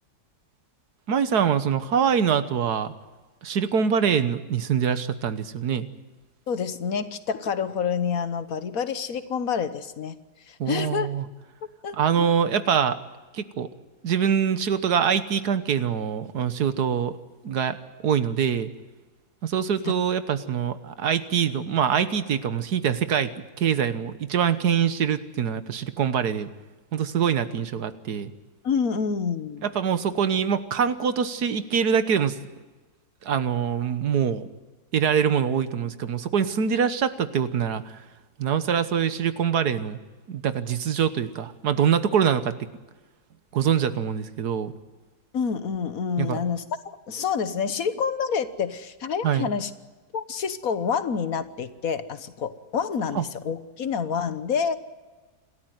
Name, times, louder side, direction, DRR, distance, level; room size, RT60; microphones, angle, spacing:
voice 1, 1.1-2.9 3.4-5.9 10.6-11.2 11.9-13.0 13.3-13.7 14.0-17.1 17.4-17.8 18.0-18.7 19.4-23.3 23.6-26.5 26.9-28.3 29.6-32.4 33.2-34.4 34.9-38.0 38.4-40.0 40.3-42.7 43.5-44.7 46.2-46.4 49.2-49.5 53.1-53.3, right 7 dB, 85° right, 12 dB, 1.7 m, -24 dB
voice 2, 6.5-10.2 10.5-11.1 11.8-12.3 28.6-29.7 45.3-46.6 47.1-49.7 50.1-54.8, left 6 dB, 65° left, 12 dB, 1.6 m, -28 dB
27.5 x 13.5 x 9.4 m, 1.2 s
omnidirectional pair, 1.7 m